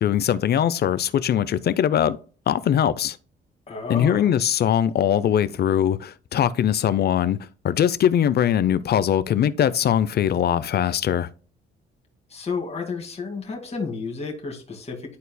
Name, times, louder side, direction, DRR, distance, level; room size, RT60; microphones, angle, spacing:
voice 1, 0.0-2.2 2.5-3.2 3.9-7.4 7.6-11.3, left 9 dB, 55° left, 0.6 m, -21 dB
voice 2, 3.7-4.3 12.3-15.2, left 4 dB, 30° left, 2.1 m, -31 dB
11.5 x 4.1 x 2.2 m
cardioid pair, 90°, 20 cm